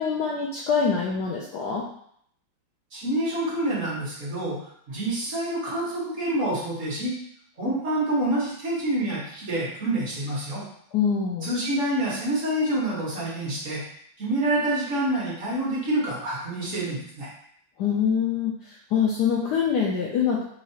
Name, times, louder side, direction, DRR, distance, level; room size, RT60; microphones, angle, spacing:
voice 1, 0.0-1.9 10.9-11.5 17.8-20.4, left 6 dB, 80° left, -3 dB, 0.9 m, -24 dB
voice 2, 2.9-7.2 7.6-10.6 11.4-13.8 14.2-17.3, right 1 dB, 40° right, -7 dB, 1.6 m, -27 dB
4.6 x 2.8 x 2.8 m, 0.67 s
omnidirectional pair, 2.3 m